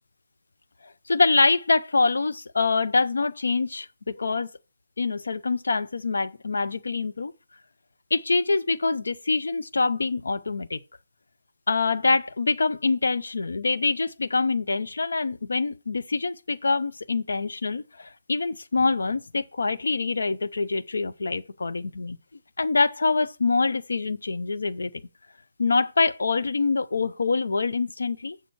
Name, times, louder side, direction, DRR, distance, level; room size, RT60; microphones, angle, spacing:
voice 1, 0.8-4.5 5.0-7.3 8.1-10.8 11.7-22.2 22.6-24.9 25.6-28.4, left 3 dB, 65° left, 0.7 m, -25 dB
7.1 x 6.9 x 4.4 m
figure-of-eight pair, 140°, 0 cm